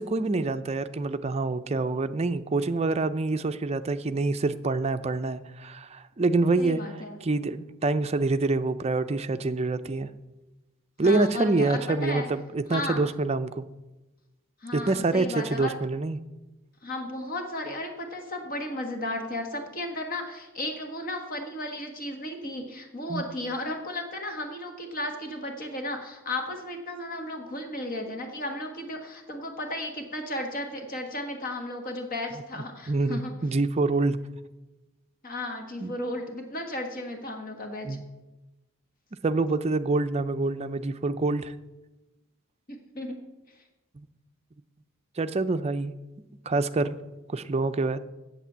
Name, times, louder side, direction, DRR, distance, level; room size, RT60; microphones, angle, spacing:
voice 1, 0.0-6.8 7.2-10.1 11.0-13.7 14.7-16.2 23.1-23.3 32.9-34.2 35.8-35.9 37.8-38.0 39.2-41.5 45.2-45.9 46.5-47.0 47.3-48.0, right 3 dB, 30° right, 10 dB, 0.5 m, -26 dB
voice 2, 6.6-7.2 11.0-12.3 12.7-13.0 14.6-15.7 16.8-33.3 35.2-38.0 42.7-43.2, left 1 dB, 40° left, 3 dB, 1.5 m, -34 dB
8.4 x 8.0 x 7.4 m, 1.1 s
head